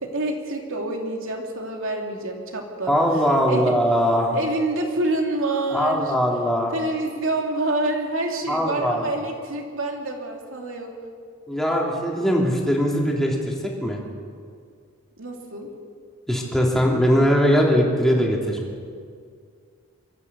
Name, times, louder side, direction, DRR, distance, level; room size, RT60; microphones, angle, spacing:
voice 1, 0.0-3.0 3.5-3.7 4.3-6.1 6.7-10.9 15.2-15.7, right 2 dB, 65° right, 1 dB, 3.0 m, -27 dB
voice 2, 2.9-4.4 5.7-6.7 8.5-9.1 11.5-14.0 16.3-18.6, equal, ahead, -2 dB, 3.1 m, -21 dB
23.0 x 14.0 x 8.2 m, 2.2 s
head